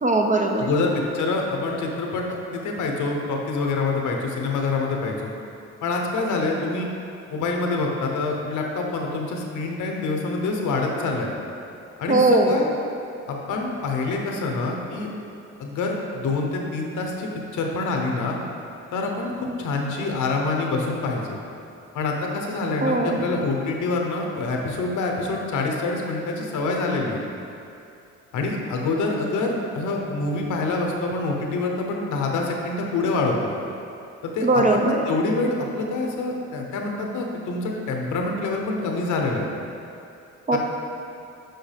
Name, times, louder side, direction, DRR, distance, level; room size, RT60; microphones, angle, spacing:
voice 1, 0.0-0.7 12.1-12.6 22.8-23.3 34.4-35.0 40.5-40.6, right 2 dB, 25° right, 2 dB, 0.7 m, -20 dB
voice 2, 0.6-2.2 2.5-5.3 5.8-6.9 7.3-11.3 12.0-12.7 13.3-15.1 15.6-18.4 18.9-21.4 21.9-27.2 28.3-33.5 34.2-39.5 40.5-40.6, left 3 dB, 80° left, 1 dB, 1.1 m, -26 dB
7.9 x 5.4 x 3.5 m, 2.7 s
cardioid pair, 90°, 30 cm